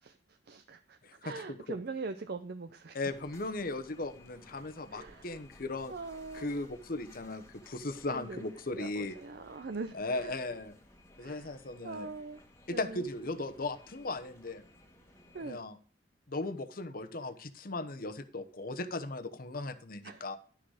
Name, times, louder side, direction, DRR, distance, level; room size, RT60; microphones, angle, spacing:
voice 1, 0.0-3.0 4.9-5.3 5.9-6.5 8.1-8.4 8.8-10.3 11.2-11.6 11.8-12.4 12.7-13.1 15.3-15.6 20.0-20.3, right 3 dB, 60° right, 9 dB, 0.6 m, -42 dB
voice 2, 1.0-1.6 2.9-5.9 6.3-9.2 9.9-10.7 11.2-12.1 12.7-14.6 15.4-15.8 16.3-20.4, left 2 dB, 55° left, 9 dB, 1.0 m, -37 dB
sound 1, 3.0-15.6, left 1 dB, 15° left, 1.5 m, -58 dB
11.5 x 6.4 x 4.9 m, 0.40 s
head